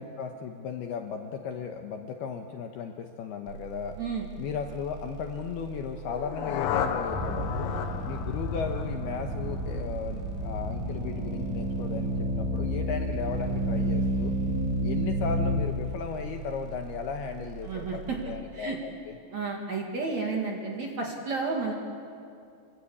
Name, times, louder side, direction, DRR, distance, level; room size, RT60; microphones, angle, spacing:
voice 1, 0.0-4.0 4.4-7.7 8.0-14.3 14.8-19.1, left 6 dB, 75° left, 4 dB, 2.5 m, -36 dB
sound 1, 3.5-18.2, right 6 dB, 75° right, 5.1 m, -43 dB
sound 2, 6.0-10.0, left 8 dB, 90° left, 3.9 m, -34 dB
sound 3, 7.1-15.6, equal, 5° right, 4.3 m, -30 dB
voice 2, 17.6-18.2 18.5-18.8 19.3-21.7, right 4 dB, 45° right, 0 dB, 2.7 m, -32 dB
26.5 x 23.5 x 8.5 m, 2.5 s
omnidirectional pair, 5.6 m